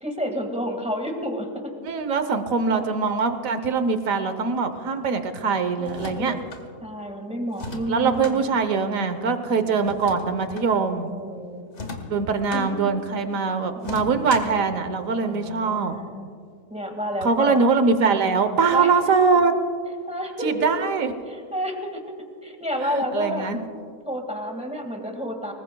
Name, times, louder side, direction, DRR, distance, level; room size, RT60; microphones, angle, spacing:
voice 1, 0.0-1.7 2.7-2.9 5.8-6.5 6.8-8.5 9.2-9.9 11.0-11.7 12.5-12.9 13.7-14.6 15.2-16.3 16.7-17.6 18.7-19.0 20.1-20.6 21.3-22.0 22.4-23.5 24.1-25.5, equal, 5° right, 3 dB, 1.8 m, -31 dB
voice 2, 1.8-6.3 7.9-11.1 12.1-16.0 17.2-19.5 20.4-21.1 22.8-23.6, right 4 dB, 60° right, 9 dB, 1.3 m, -22 dB
sound 1, 5.8-6.6 7.5-8.4 9.8-10.7 11.7-12.7 13.8-14.6, left 2 dB, 45° left, 1.7 m, -36 dB
25.5 x 20.5 x 2.3 m, 2.2 s
omnidirectional pair, 1.7 m